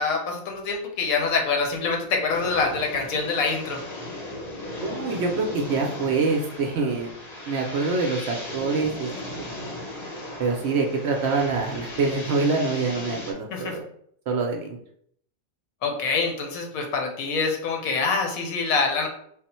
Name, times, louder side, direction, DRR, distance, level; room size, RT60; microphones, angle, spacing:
voice 1, 0.0-3.8 13.5-13.8 15.8-19.1, left 4 dB, 85° left, 2 dB, 1.2 m, -25 dB
sound 1, 2.3-13.3, left 1 dB, 40° left, 0.7 m, -37 dB
voice 2, 4.8-7.1 7.5-9.1 9.4-9.6 10.4-13.8 14.3-14.8, right 4 dB, 65° right, 1 dB, 0.7 m, -25 dB
3.5 x 2.1 x 4.2 m, 0.67 s
omnidirectional pair, 1.4 m